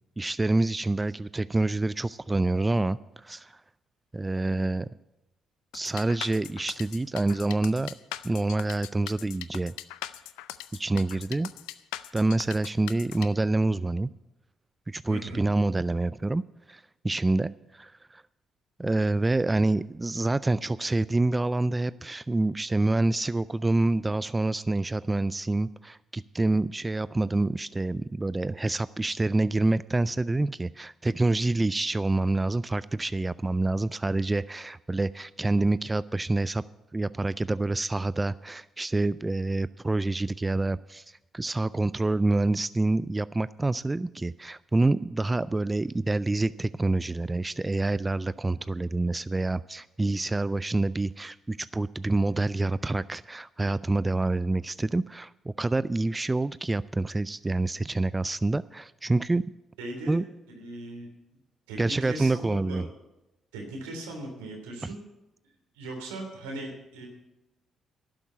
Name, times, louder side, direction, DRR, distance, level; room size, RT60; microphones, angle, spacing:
voice 1, 0.2-3.6 4.1-4.9 5.7-7.9 8.2-9.7 10.7-11.5 12.1-14.1 14.9-16.4 16.7-18.2 18.8-36.6 36.9-59.4 60.1-60.2 61.8-62.9, right 2 dB, 20° right, 18 dB, 0.3 m, -27 dB
sound 1, 5.7-13.3, left 15 dB, 80° left, 0.4 m, -40 dB
voice 2, 15.1-15.4 59.8-60.2 60.5-61.1 61.7-62.8 63.5-65.0 65.7-67.1, right 2 dB, 85° right, 2 dB, 3.0 m, -38 dB
11.5 x 7.1 x 9.2 m, 0.95 s
hypercardioid pair, 50°, 0 cm